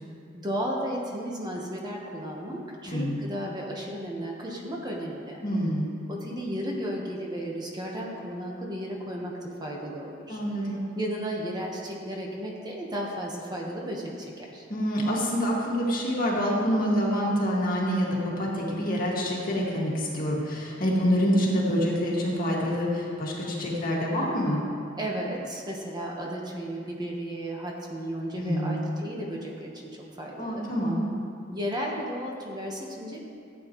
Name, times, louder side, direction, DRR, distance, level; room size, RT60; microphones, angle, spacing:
voice 1, 0.3-5.4 6.1-10.4 11.0-14.7 24.9-29.9 30.2-30.6 31.5-33.2, equal, 20° right, -2 dB, 1.2 m, -34 dB
voice 2, 2.9-3.2 5.4-5.9 10.3-10.8 14.7-24.6 28.4-28.8 30.4-31.0, equal, 45° left, -4 dB, 2.1 m, -26 dB
16.0 x 8.8 x 3.1 m, 2.4 s
head